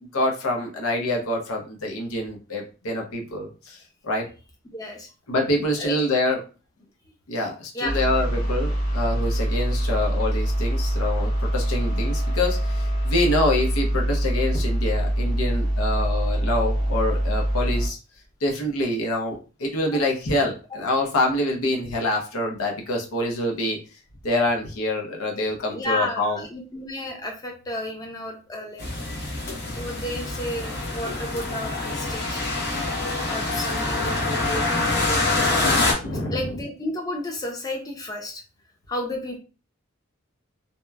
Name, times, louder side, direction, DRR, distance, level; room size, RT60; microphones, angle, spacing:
voice 1, 0.0-4.3 5.3-6.4 7.3-18.0 18.4-23.8 24.2-26.4 36.0-36.4, left 1 dB, 80° left, 1 dB, 0.7 m, -26 dB
voice 2, 4.7-5.1 5.8-6.0 7.7-8.0 19.9-20.0 25.7-28.8 29.7-32.4 33.3-35.7 36.3-38.4 38.9-39.4, left 1 dB, 15° left, 1 dB, 0.5 m, -32 dB
sound 1, 7.9-17.9, right 1 dB, 35° left, 1.5 m, -24 dB
sound 2, 28.8-35.9, left 2 dB, 50° left, 0.8 m, -25 dB
2.8 x 2.1 x 2.2 m, 0.33 s
head